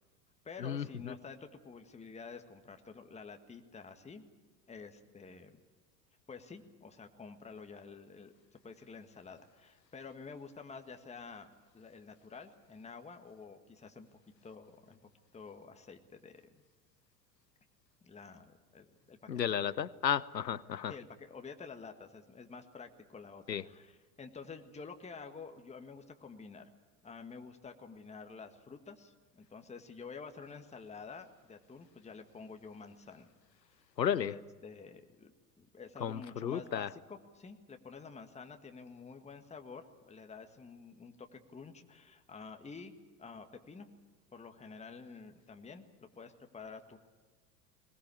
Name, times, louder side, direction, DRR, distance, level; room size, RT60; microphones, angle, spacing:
voice 1, 0.4-4.2 4.7-5.6 6.3-11.5 11.7-14.1 14.4-15.0 15.3-16.4 18.0-19.5 20.9-26.7 27.0-33.3 34.1-42.9 43.2-43.9 44.3-45.9 46.2-47.0, left 5 dB, 15° left, 6 dB, 1.8 m, -49 dB
voice 2, 19.3-20.9 23.5-23.6 34.0-34.3 36.0-36.9, left 9 dB, 90° left, 20 dB, 0.8 m, -33 dB
21.0 x 20.0 x 8.6 m, 1.4 s
figure-of-eight pair, 85°, 49 cm